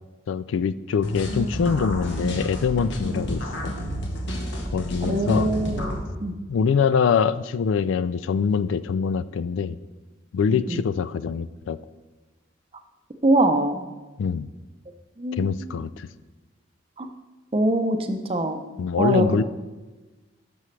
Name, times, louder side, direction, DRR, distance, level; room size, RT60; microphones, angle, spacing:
voice 1, 0.3-3.8 4.7-5.5 6.5-9.8 10.3-11.8 14.2-14.5 15.4-16.1 18.8-19.4, left 6 dB, 80° left, 16 dB, 0.3 m, -24 dB
sound 1, 1.0-6.0, equal, 65° left, 1.3 m, -30 dB
voice 2, 5.0-5.9 6.2-6.3 10.5-10.8 13.2-13.9 15.2-15.9 17.0-17.1 17.5-18.6 19.0-19.4, right 1 dB, 30° right, 6 dB, 0.6 m, -23 dB
12.5 x 6.1 x 3.2 m, 1.2 s
head